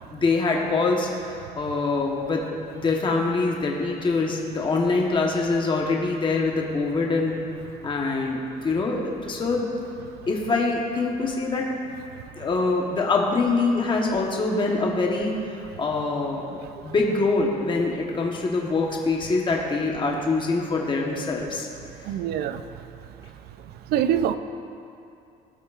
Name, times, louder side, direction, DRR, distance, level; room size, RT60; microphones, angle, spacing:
voice 1, 0.1-2.4 2.7-7.3 7.8-9.6 10.3-11.7 12.3-15.3 15.8-16.6 16.8-21.7, left 3 dB, 30° left, -1 dB, 1.1 m, -24 dB
voice 2, 22.1-22.6 23.9-24.4, right 10 dB, 70° right, 11 dB, 0.4 m, -23 dB
16.0 x 6.2 x 2.4 m, 2.6 s
cardioid pair, 110°, 17 cm